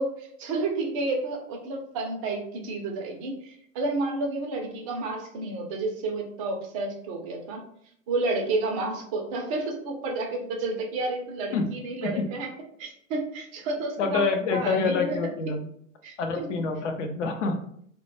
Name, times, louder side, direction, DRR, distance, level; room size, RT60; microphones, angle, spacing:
voice 1, 0.0-7.6 8.1-12.5 12.8-14.2 14.5-15.2 16.0-16.5, right 2 dB, 25° right, 2 dB, 0.4 m, -30 dB
voice 2, 14.0-15.7 16.2-17.6, left 4 dB, 60° left, 5 dB, 0.6 m, -26 dB
2.1 x 2.1 x 3.0 m, 0.67 s
figure-of-eight pair, 105°, 41 cm